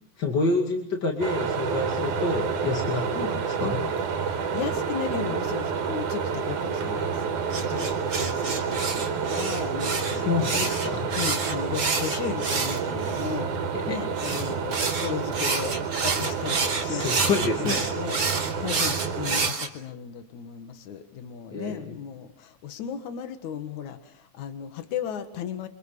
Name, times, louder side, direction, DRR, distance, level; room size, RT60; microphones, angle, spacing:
voice 1, 0.2-3.9 7.7-7.9 10.1-11.0 13.7-14.0 16.8-17.9 18.1-18.2 21.5-22.0, left 3 dB, 35° left, 2 dB, 2.8 m, -28 dB
sound 1, 1.2-19.5, right 6 dB, 90° right, 3.1 m, -29 dB
voice 2, 4.2-10.7 11.2-13.5 13.9-25.7, left 8 dB, 75° left, 9 dB, 2.9 m, -36 dB
sound 2, 7.5-13.3 14.2-19.7, right 4 dB, 50° right, 4.0 m, -29 dB
29.0 x 26.0 x 6.7 m, 0.71 s
omnidirectional pair, 3.4 m